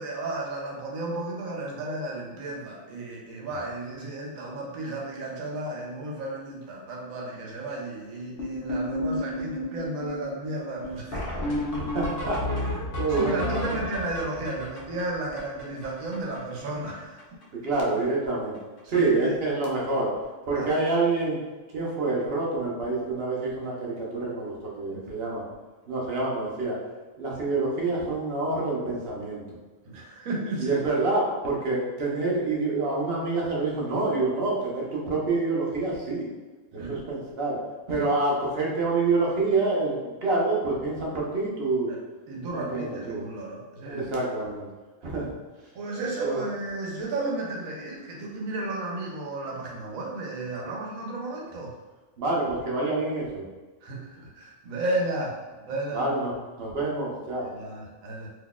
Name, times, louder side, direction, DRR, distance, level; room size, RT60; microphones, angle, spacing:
voice 1, 0.0-11.5 13.1-17.2 18.8-19.4 20.5-20.7 24.9-25.1 29.9-30.8 36.8-37.0 38.0-38.2 41.9-42.0 42.3-44.1 45.7-51.7 53.8-55.4 55.7-56.1 57.4-58.3, right 2 dB, 90° right, -1 dB, 1.2 m, -33 dB
sound 1, 8.4-16.6 16.9-17.0 17.2-17.4 17.7-18.2 18.5-18.8 19.6-19.7 20.1-20.2 20.5-20.7 22.9-23.0 25.4-25.5, left 1 dB, 50° left, 0.8 m, -32 dB
voice 2, 11.7-13.8 17.6-18.6 18.9-20.1 20.5-21.4 21.7-25.4 25.9-26.8 27.2-29.4 30.6-36.3 36.7-37.6 37.9-41.9 42.4-43.2 43.8-44.7 45.0-45.3 46.2-46.4 52.2-53.4 55.9-56.3 56.6-57.5, right 3 dB, 55° right, -4 dB, 0.9 m, -27 dB
3.9 x 2.9 x 2.3 m, 1.3 s
omnidirectional pair, 1.4 m